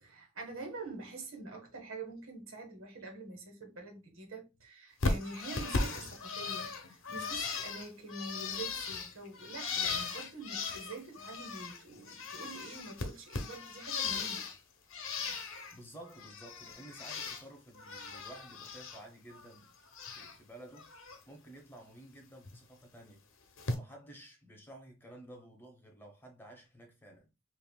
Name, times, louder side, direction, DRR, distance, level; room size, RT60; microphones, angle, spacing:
voice 1, 0.0-14.4, right 3 dB, 90° right, 1.3 m, -46 dB
Bird, 5.0-11.8 12.1-14.6 14.9-15.8 16.1-17.4 17.7-19.0 19.3-20.4 20.7-21.2 22.5-22.6 23.6-23.7, left 4 dB, 75° left, 0.7 m, -37 dB
voice 2, 15.7-19.7 20.1-20.9 21.3-23.2 23.7-27.3, right 1 dB, 10° left, 1.0 m, -53 dB
5.3 x 2.7 x 2.2 m
head